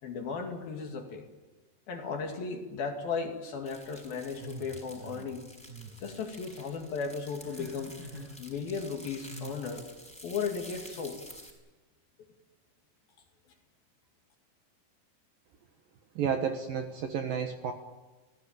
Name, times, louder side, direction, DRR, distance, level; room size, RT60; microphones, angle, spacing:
voice 1, 0.0-1.2 1.9-5.4 6.0-8.0 8.4-9.9 10.2-11.2, left 5 dB, 55° left, 3 dB, 4.0 m, -35 dB
sound 1, 3.7-11.5, equal, ahead, 5.9 m, -50 dB
sound 2, 4.4-5.3 5.7-5.9 6.3-6.8 7.4-8.4 9.3-9.6, right 1 dB, 20° right, 6.6 m, -45 dB
voice 2, 16.2-17.7, right 7 dB, 65° right, 5 dB, 2.5 m, -31 dB
29.5 x 17.5 x 9.0 m, 1.2 s
omnidirectional pair, 5.4 m